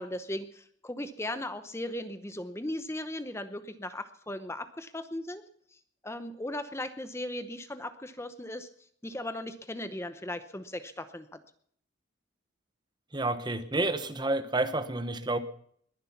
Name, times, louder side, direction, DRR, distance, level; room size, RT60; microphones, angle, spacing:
voice 1, 0.0-5.4 5.7-8.7 9.0-11.4, left 1 dB, 15° left, 11 dB, 0.8 m, -37 dB
voice 2, 13.1-15.4, right 2 dB, 20° right, 11 dB, 1.0 m, -29 dB
21.0 x 11.0 x 5.8 m, 0.64 s
head